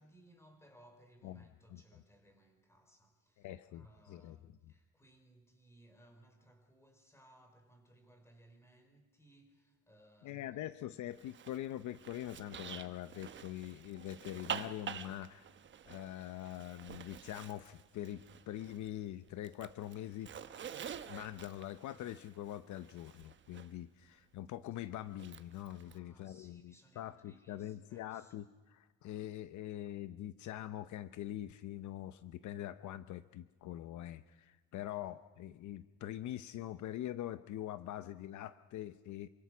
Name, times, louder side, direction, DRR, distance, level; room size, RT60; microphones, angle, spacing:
voice 1, 0.0-10.6 25.8-28.4, right 1 dB, 10° left, 5 dB, 4.4 m, -64 dB
voice 2, 1.2-1.8 3.4-4.7 10.2-15.5 15.9-20.3 21.1-39.3, left 12 dB, 60° left, 13 dB, 0.8 m, -44 dB
Zipper (clothing), 11.1-19.0 19.3-23.7 25.1-26.0, right 8 dB, 35° right, 1.1 m, -48 dB
27.5 x 25.0 x 6.2 m, 1.2 s
cardioid pair, 160°, 33 cm